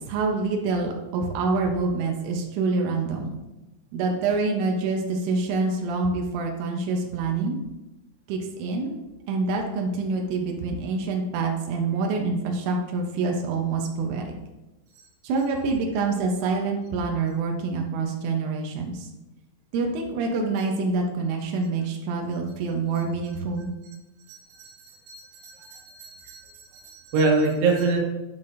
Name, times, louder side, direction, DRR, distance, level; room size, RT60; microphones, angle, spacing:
voice 1, 0.1-3.4 3.9-7.6 8.3-9.0 9.3-14.4 15.2-19.1 19.7-23.7, right 3 dB, 90° right, 1 dB, 3.4 m, -26 dB
voice 2, 24.3-28.0, right 3 dB, 70° right, -1 dB, 3.2 m, -26 dB
11.5 x 5.6 x 2.6 m, 0.99 s
omnidirectional pair, 5.5 m